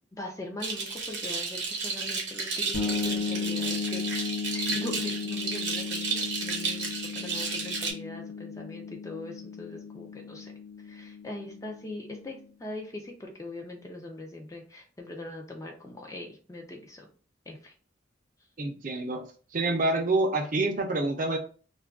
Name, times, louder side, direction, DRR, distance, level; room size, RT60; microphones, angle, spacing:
voice 1, 0.1-4.1 4.5-10.5 10.8-17.1 17.5-17.7, left 2 dB, 15° left, 2 dB, 0.3 m, -41 dB
sound 1, 0.6-7.9, right 4 dB, 65° right, 0.8 m, -32 dB
sound 2, 2.7-12.3, left 5 dB, 85° left, 0.6 m, -35 dB
voice 2, 18.6-19.2 19.5-21.4, right 2 dB, 45° right, 4 dB, 0.5 m, -27 dB
2.3 x 2.2 x 3.4 m, 0.40 s
head